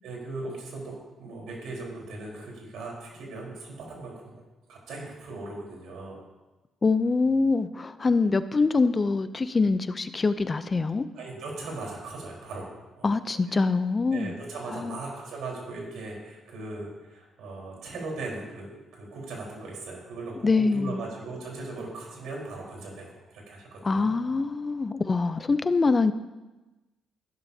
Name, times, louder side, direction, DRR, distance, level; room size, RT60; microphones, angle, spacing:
voice 1, 0.0-4.3 4.7-6.2 11.1-13.2 13.4-13.6 14.1-24.1, right 2 dB, 80° right, 4.1 m, -39 dB
voice 2, 6.8-11.1 13.0-14.3 14.7-15.0 20.4-21.0 23.8-26.1, left 3 dB, 30° left, 0.5 m, -24 dB
14.0 x 11.5 x 2.8 m
cardioid pair, 90°, 0 cm